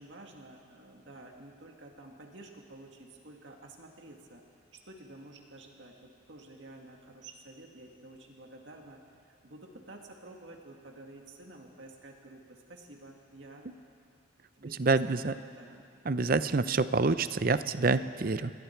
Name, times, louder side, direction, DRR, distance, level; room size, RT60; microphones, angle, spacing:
voice 1, 0.0-4.4 4.7-13.7 14.6-15.9, right 2 dB, 65° right, 1 dB, 2.1 m, -51 dB
voice 2, 14.8-15.3 16.1-18.5, right 3 dB, 45° right, 13 dB, 0.6 m, -27 dB
28.5 x 22.0 x 4.6 m, 2.3 s
head